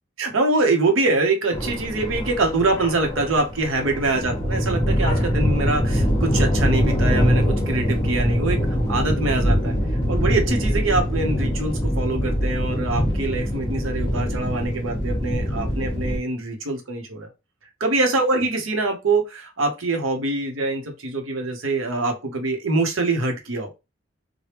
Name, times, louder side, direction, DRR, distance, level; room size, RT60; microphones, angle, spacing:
voice 1, 0.2-8.6 8.9-9.7 10.1-17.3 17.8-23.7, right 3 dB, 85° right, 4 dB, 0.8 m, -24 dB
sound 1, 1.5-16.2, equal, 20° left, 0.9 m, -23 dB
3.3 x 2.2 x 2.9 m, 0.26 s
head